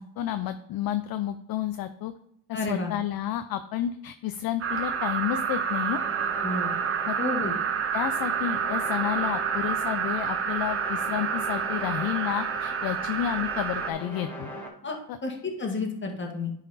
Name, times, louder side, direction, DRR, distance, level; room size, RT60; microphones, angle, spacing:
voice 1, 0.0-2.1 2.5-6.0 7.0-7.2 7.9-14.5 15.1-15.2, left 11 dB, 50° left, 9 dB, 0.5 m, -31 dB
voice 2, 2.5-2.9 6.4-6.7 7.2-7.5 14.8-16.5, left 3 dB, 25° left, 1 dB, 1.7 m, -31 dB
sound 1, 4.6-13.9, right 7 dB, 30° right, 0.6 m, -29 dB
sound 2, 4.7-14.7, right 1 dB, 5° left, 1.4 m, -41 dB
10.5 x 4.1 x 4.1 m, 0.74 s
cardioid pair, 115°, 47 cm